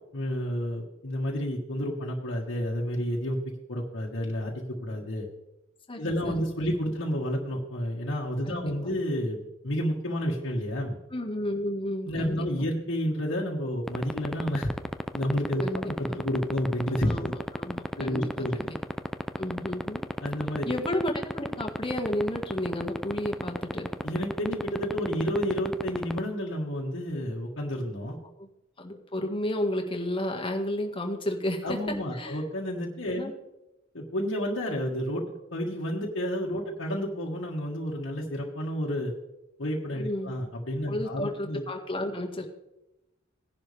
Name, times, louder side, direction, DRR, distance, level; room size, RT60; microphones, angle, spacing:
voice 1, 0.1-3.4 3.7-5.3 6.0-11.0 12.1-14.7 15.1-17.3 18.0-18.6 20.2-20.8 24.0-28.2 31.6-33.3 33.9-35.2 35.5-39.1 39.6-41.6, equal, 70° left, -4 dB, 1.7 m, -30 dB
voice 2, 5.9-6.4 8.5-9.0 11.1-12.5 15.6-16.2 17.0-18.8 19.4-20.0 20.7-23.9 28.4-28.5 28.8-31.8 32.1-32.4 33.2-33.3 40.0-40.3 40.9-42.5, left 1 dB, 25° left, 2 dB, 1.7 m, -32 dB
sound 1, 13.9-26.2, equal, ahead, 0.4 m, -29 dB
17.5 x 11.0 x 3.4 m, 0.93 s
head